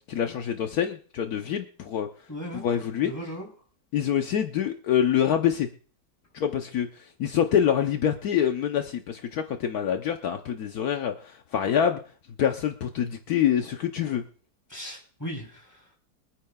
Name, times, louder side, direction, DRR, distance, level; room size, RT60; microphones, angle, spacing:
voice 1, 0.1-2.1 2.5-3.1 3.9-5.7 6.3-12.0 12.4-14.2, left 9 dB, 70° left, 5 dB, 1.3 m, -26 dB
voice 2, 2.3-2.6 3.0-3.5 14.7-16.0, equal, 10° left, 0 dB, 3.2 m, -37 dB
24.5 x 9.6 x 2.3 m, 0.43 s
omnidirectional pair, 1.7 m